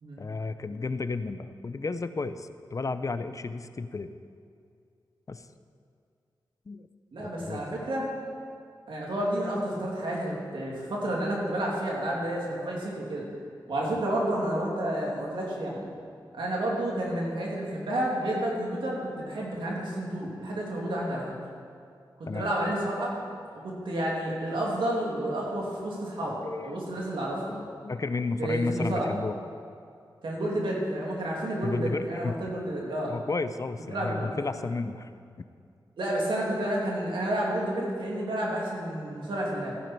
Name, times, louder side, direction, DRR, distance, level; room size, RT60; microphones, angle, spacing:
voice 1, 0.2-4.1 5.3-5.5 6.7-6.9 7.2-7.6 13.9-14.0 17.8-17.9 22.3-22.5 26.2-26.9 27.5-29.3 31.6-32.3 33.1-35.1, left 3 dB, 45° left, 11 dB, 0.5 m, -33 dB
voice 2, 7.1-8.1 8.9-13.2 13.7-15.9 16.3-21.3 22.2-23.1 23.6-27.6 28.4-29.1 30.2-33.1 33.9-34.5 36.0-39.8, right 1 dB, 90° right, -3 dB, 2.8 m, -30 dB
14.5 x 10.5 x 4.5 m, 2.3 s
wide cardioid pair, 80°, 8 cm